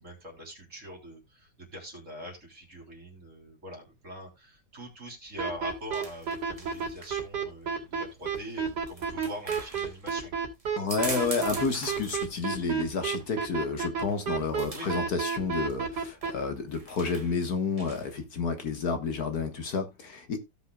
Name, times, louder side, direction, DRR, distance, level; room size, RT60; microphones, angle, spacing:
voice 1, 0.0-10.3 11.2-11.3 14.7-14.9, equal, 45° right, 3.8 m, -43 dB
sound 1, 5.3-18.2, right 2 dB, 20° right, 1.5 m, -44 dB
sound 2, 5.4-16.3, right 6 dB, 70° right, 3.2 m, -30 dB
voice 2, 10.8-20.4, left 4 dB, 60° left, 1.8 m, -30 dB
17.0 x 6.1 x 2.3 m
omnidirectional pair, 1.9 m